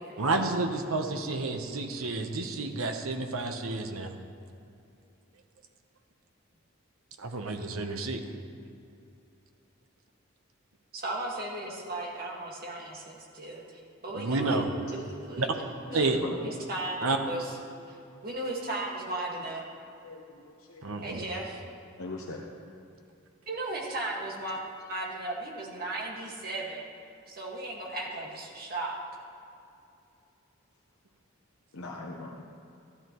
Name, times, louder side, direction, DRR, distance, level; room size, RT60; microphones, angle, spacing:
voice 1, 0.2-4.1 7.2-8.2 14.1-14.7 15.4-15.5 15.9-16.2 17.0-17.2 20.8-21.2, right 3 dB, 80° right, 5 dB, 1.0 m, -30 dB
voice 2, 10.9-14.6 14.9-15.6 15.9-17.6 17.9-18.0 18.2-19.7 21.0-21.6 23.5-24.6 24.9-26.8 27.3-29.0, right 2 dB, 45° right, -2 dB, 1.8 m, -36 dB
voice 3, 20.0-20.8 22.0-22.4 31.7-32.4, left 2 dB, 80° left, -2 dB, 1.0 m, -41 dB
13.0 x 12.0 x 3.1 m, 2.7 s
head